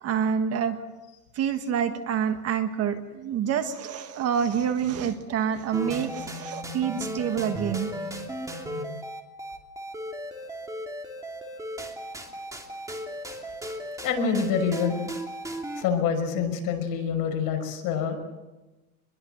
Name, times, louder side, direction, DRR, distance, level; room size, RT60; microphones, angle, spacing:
voice 1, 0.0-0.8 1.3-7.9, right 8 dB, 30° right, 8 dB, 1.6 m, -27 dB
sound 1, 5.7-15.8, equal, 5° right, 2.7 m, -36 dB
voice 2, 14.0-15.0 15.8-18.2, left 6 dB, 45° left, 3 dB, 6.2 m, -26 dB
25.0 x 22.0 x 7.9 m, 1.1 s
supercardioid pair, 145°, 45 cm